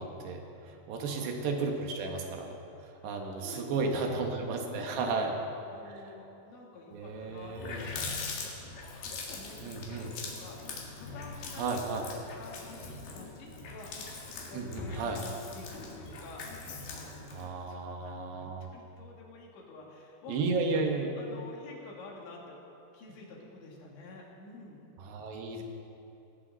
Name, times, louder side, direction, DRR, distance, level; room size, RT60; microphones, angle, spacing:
voice 1, 0.0-2.6 2.8-5.4 5.9-6.0 6.9-7.9 9.6-10.1 11.6-12.1 14.5-15.2 17.3-18.7 20.3-21.1 25.0-25.6, right 3 dB, 75° right, 2 dB, 3.5 m, -33 dB
voice 2, 0.9-1.4 3.0-4.2 4.6-5.2 5.7-8.5 8.9-11.9 12.4-14.0 14.5-16.5 16.9-17.4 17.7-20.4 21.2-22.6 22.9-24.9, left 3 dB, 85° left, -2 dB, 4.6 m, -50 dB
Water tap faucet, 7.0-7.1 7.4-17.5, left 3 dB, 65° left, 3.8 m, -42 dB
18.0 x 17.5 x 4.0 m, 2.9 s
omnidirectional pair, 5.1 m